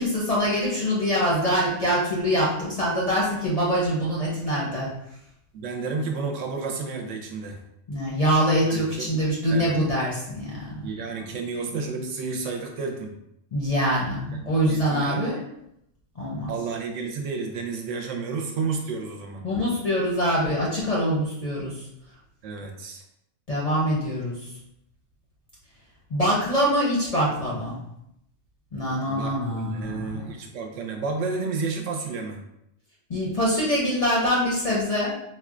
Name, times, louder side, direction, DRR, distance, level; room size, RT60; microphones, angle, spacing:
voice 1, 0.0-4.9 7.9-10.7 13.5-15.4 16.2-16.5 19.4-21.8 23.5-24.4 26.1-27.8 28.7-30.2 33.1-35.1, equal, 45° left, -5 dB, 0.5 m, -24 dB
voice 2, 5.5-7.6 8.7-9.1 9.5-9.7 10.8-13.1 14.3-15.4 16.5-19.4 22.4-23.0 29.0-32.4, right 4 dB, 80° right, 2 dB, 0.9 m, -31 dB
4.1 x 2.1 x 2.4 m, 0.80 s
omnidirectional pair, 1.3 m